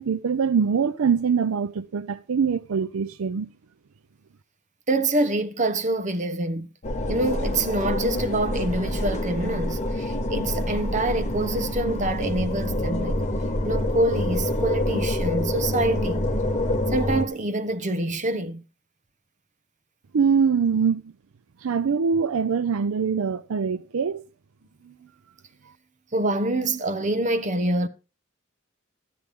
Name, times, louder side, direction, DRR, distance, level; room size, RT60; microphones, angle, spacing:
voice 1, 0.0-3.5 20.1-21.0 21.6-24.2, right 6 dB, 75° right, 0.5 m, -23 dB
voice 2, 4.9-6.7 7.1-13.2 13.6-16.3 16.9-18.6 24.8-25.1 26.1-27.9, right 2 dB, 35° right, 0.9 m, -26 dB
sound 1, 6.8-17.3, left 1 dB, 35° left, 1.6 m, -26 dB
12.0 x 9.8 x 3.6 m
head